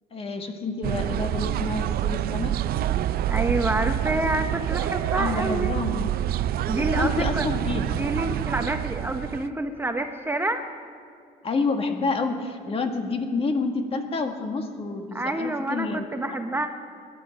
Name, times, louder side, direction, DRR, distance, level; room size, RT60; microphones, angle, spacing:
voice 1, 0.1-2.5 5.2-6.1 6.8-8.0 11.4-16.1, left 3 dB, 35° left, 5 dB, 1.8 m, -28 dB
sound 1, 0.8-9.5, right 11 dB, 65° right, 0.5 m, -27 dB
voice 2, 3.3-5.8 6.7-7.5 8.0-10.6 15.1-16.7, right 1 dB, 15° right, 5 dB, 0.9 m, -28 dB
20.5 x 11.0 x 6.4 m, 2.2 s
cardioid pair, 110°, 17 cm